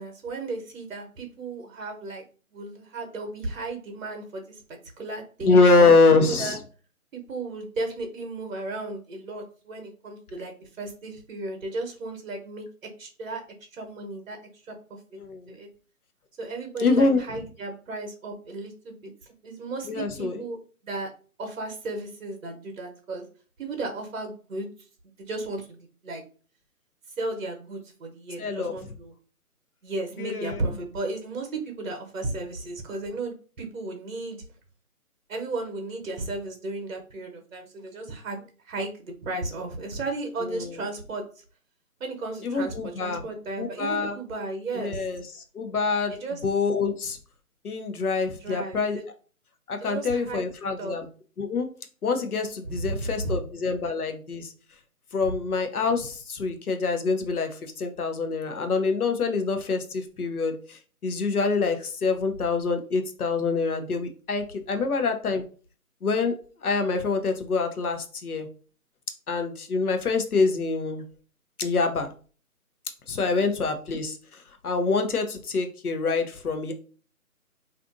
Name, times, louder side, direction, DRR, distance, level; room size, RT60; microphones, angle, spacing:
voice 1, 0.0-2.2 2.5-6.6 7.1-12.7 13.0-13.4 13.7-14.4 14.6-14.7 15.5-15.7 16.4-20.6 20.8-21.1 21.4-23.2 23.6-24.7 25.0-26.2 27.2-29.1 29.8-34.4 35.3-38.4 38.7-41.2 42.0-45.1 46.1-46.4 48.4-49.0 49.8-50.4 50.8-50.9 52.6-53.4 55.3-55.4 73.1-73.5, right 2 dB, 60° right, 3 dB, 0.8 m, -34 dB
voice 2, 5.4-6.6 15.2-15.5 16.8-17.2 19.9-20.4 28.4-28.7 30.2-30.6 40.5-40.7 42.4-43.2 43.6-44.2 44.8-45.2 45.5-46.1 46.4-47.2 47.6-49.0 49.7-51.1 51.4-51.7 52.0-54.5 55.1-65.4 66.0-66.3 66.6-68.5 69.3-71.0 71.6-72.1 73.1-74.2 74.6-76.7, left 4 dB, 80° left, 6 dB, 0.7 m, -25 dB
2.5 x 2.5 x 2.4 m, 0.40 s
figure-of-eight pair, 155°, 44 cm